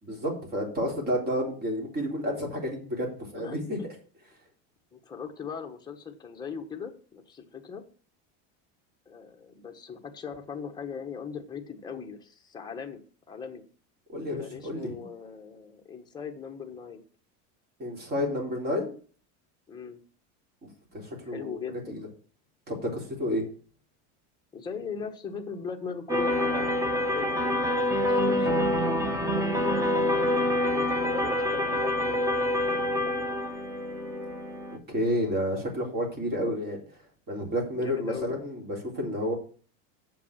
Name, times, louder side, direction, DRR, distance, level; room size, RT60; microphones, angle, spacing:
voice 1, 0.0-3.8 14.1-14.9 17.8-18.9 20.9-22.1 22.7-23.4 34.9-36.8 37.3-39.3, equal, 25° right, 0 dB, 3.8 m, -30 dB
voice 2, 3.4-3.9 4.9-7.8 9.1-13.6 14.4-17.0 19.7-20.0 21.2-22.0 24.5-32.3 32.7-33.4 37.8-38.3, left 6 dB, 10° left, 2 dB, 1.3 m, -40 dB
sound 1, 26.1-34.8, left 1 dB, 10° right, 0.9 m, -26 dB
7.3 x 6.0 x 7.3 m, 0.40 s
supercardioid pair, 145°, 36 cm